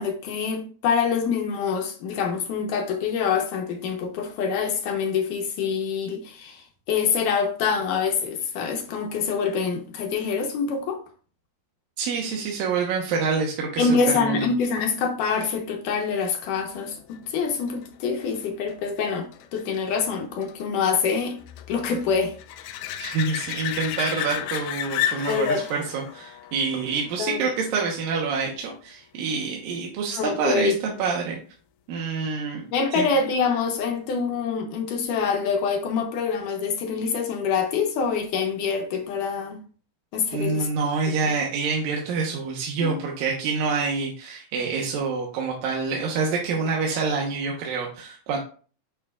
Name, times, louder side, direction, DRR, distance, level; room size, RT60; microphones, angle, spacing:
voice 1, 0.0-11.0 13.8-21.4 21.7-22.4 25.3-25.6 27.2-27.4 30.1-30.8 32.7-39.6 40.1-40.7 42.8-43.2, left 5 dB, 70° left, 2.4 m, -25 dB
voice 2, 12.0-14.5 23.0-30.7 31.0-31.4 31.9-32.6 32.9-33.1 40.3-48.4, right 5 dB, 75° right, 2.7 m, -27 dB
sound 1, 16.8-28.1 33.8-33.9, left 11 dB, 90° left, 2.5 m, -34 dB
9.4 x 6.1 x 2.4 m
omnidirectional pair, 4.2 m